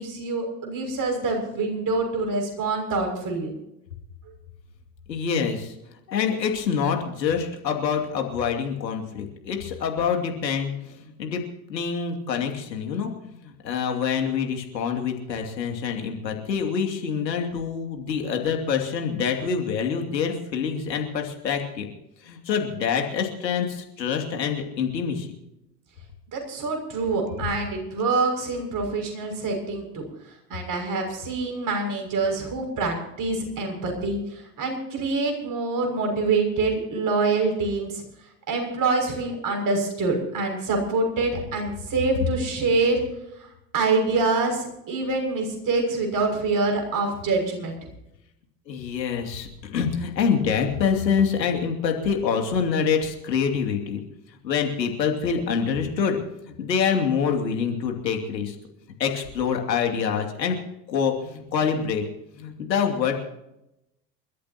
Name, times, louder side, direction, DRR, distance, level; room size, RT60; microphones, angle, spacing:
voice 1, 0.0-3.5 26.3-30.1 30.5-38.0 38.5-43.0 43.4-47.8, right 3 dB, 40° right, 3 dB, 6.4 m, -25 dB
voice 2, 5.1-5.7 6.1-10.7 11.2-11.4 11.7-21.9 22.3-25.3 48.7-54.0 54.4-56.2 56.6-58.5 59.0-60.6 60.9-62.0 62.4-63.1, left 6 dB, 80° left, 3 dB, 2.8 m, -26 dB
28.5 x 13.5 x 2.9 m, 0.86 s
hypercardioid pair, 75°, 50 cm